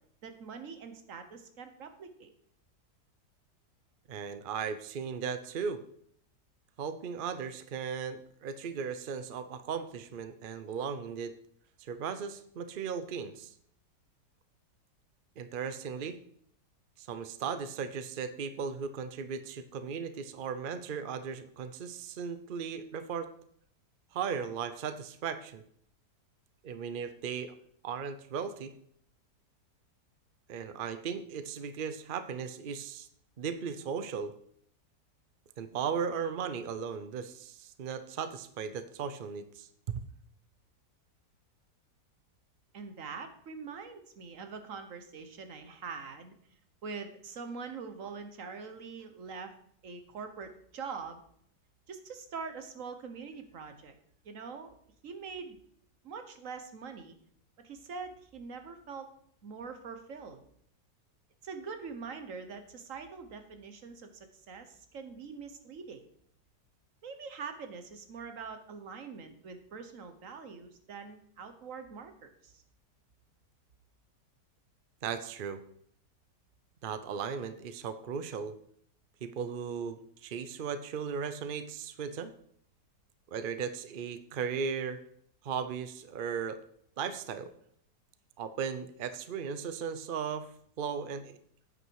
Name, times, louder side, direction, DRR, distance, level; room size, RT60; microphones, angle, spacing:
voice 1, 0.2-2.3 42.7-46.3 46.8-49.5 49.8-51.2 51.9-54.0 54.2-54.7 55.0-55.6 56.0-57.2 57.6-59.1 59.4-60.4 61.4-66.0 67.0-72.6, right 5 dB, 50° right, 7 dB, 1.4 m, -44 dB
voice 2, 4.1-5.8 6.8-11.4 11.8-13.5 15.4-16.2 17.0-23.3 24.1-25.6 26.6-27.5 27.8-28.7 30.5-33.1 33.4-34.3 35.6-40.0 75.0-75.6 76.8-78.6 79.2-82.3 83.3-85.0 85.4-86.6 87.0-87.5 88.4-90.5 90.8-91.4, right 6 dB, 75° right, 11 dB, 0.4 m, -37 dB
9.7 x 8.3 x 4.7 m, 0.65 s
omnidirectional pair, 1.8 m